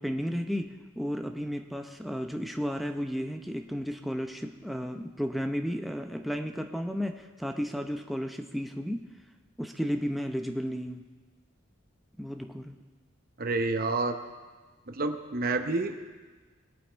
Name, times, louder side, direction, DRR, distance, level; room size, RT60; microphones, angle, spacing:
voice 1, 0.0-9.0 9.6-11.0 12.2-12.8, equal, ahead, 4 dB, 0.7 m, -33 dB
voice 2, 13.4-14.2 14.9-16.0, right 3 dB, 50° right, 7 dB, 0.8 m, -29 dB
20.5 x 7.8 x 4.5 m, 1.4 s
head